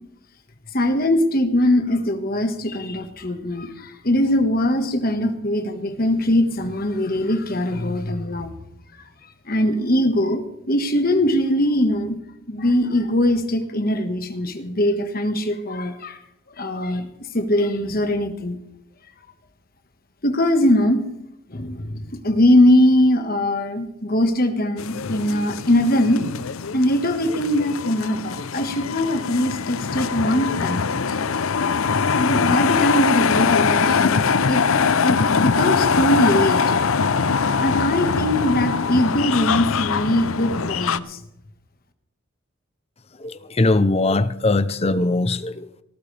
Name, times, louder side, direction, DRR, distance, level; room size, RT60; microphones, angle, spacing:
voice 1, 0.7-8.5 9.5-10.4 10.7-12.2 12.5-16.2 16.6-17.1 17.3-18.6 20.2-21.0 21.5-26.2 26.7-30.9 32.2-34.6 35.0-36.7 37.6-41.2, left 1 dB, 45° left, 1.6 m, -21 dB
sound 1, 24.8-41.0, left 5 dB, 80° left, 0.6 m, -22 dB
voice 2, 43.6-45.7, left 2 dB, 30° left, 0.6 m, -20 dB
18.5 x 14.5 x 3.4 m
head